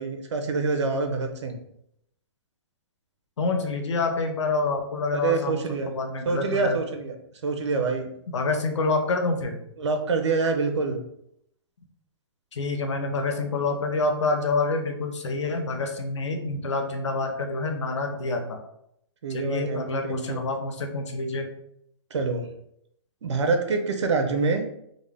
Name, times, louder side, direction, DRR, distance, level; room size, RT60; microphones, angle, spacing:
voice 1, 0.0-1.6 5.1-5.9 6.2-7.2 7.4-8.1 9.8-11.0 19.2-20.4 22.1-22.5 23.2-24.6, right 4 dB, 80° right, 5 dB, 0.7 m, -26 dB
voice 2, 3.4-6.8 8.3-9.6 12.5-18.6 19.3-21.5, left 3 dB, 85° left, 5 dB, 0.7 m, -27 dB
3.8 x 2.2 x 3.4 m, 0.75 s
hypercardioid pair, 155°, 15 cm